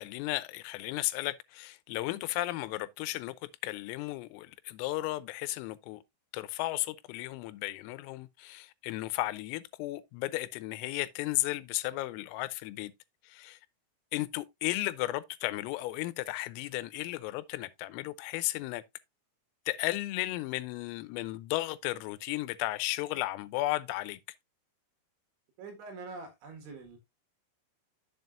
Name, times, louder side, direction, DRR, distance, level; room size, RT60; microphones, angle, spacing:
voice 1, 0.0-6.0 6.3-12.9 13.2-13.6 14.1-18.8 19.7-24.2, left 18 dB, 85° left, 3.3 m, -34 dB
voice 2, 25.6-27.0, right 3 dB, 70° right, 4.0 m, -44 dB
9.4 x 7.4 x 2.5 m
omnidirectional pair, 5.9 m